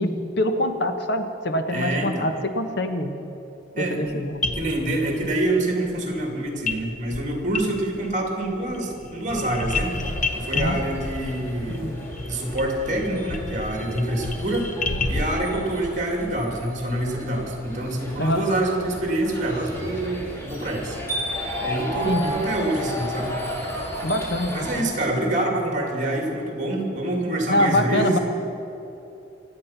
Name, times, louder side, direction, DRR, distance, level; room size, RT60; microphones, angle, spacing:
voice 1, 0.0-3.1 3.8-4.4 10.5-10.8 11.8-12.0 18.2-18.4 22.1-22.3 24.0-24.9 27.5-28.2, left 1 dB, 60° left, 7 dB, 1.2 m, -24 dB
voice 2, 1.7-2.3 3.7-4.0 4.5-9.9 10.4-11.9 12.2-14.7 15.1-21.0 21.6-23.3 24.5-28.2, right 1 dB, 40° right, 1 dB, 2.7 m, -26 dB
sound 1, 4.1-4.2 4.4-5.4 6.7-6.8 7.1-8.1 8.4-15.4, left 3 dB, 45° left, 0.9 m, -30 dB
sound 2, 9.7-24.8, equal, 15° left, 2.9 m, -34 dB
25.5 x 8.7 x 5.9 m, 2.9 s
head